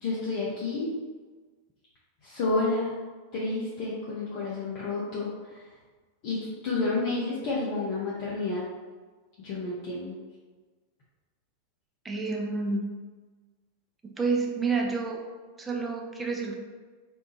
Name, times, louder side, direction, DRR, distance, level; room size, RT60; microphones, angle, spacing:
voice 1, 0.0-0.9 2.2-2.9 3.3-5.6 6.2-6.4 6.6-8.6 9.4-10.1, left 3 dB, 45° left, -7 dB, 0.8 m, -30 dB
voice 2, 12.0-12.8 14.0-15.2 15.6-16.5, right 4 dB, 15° right, 1 dB, 0.6 m, -29 dB
4.4 x 2.3 x 2.9 m, 1.4 s
figure-of-eight pair, 90°, 0 cm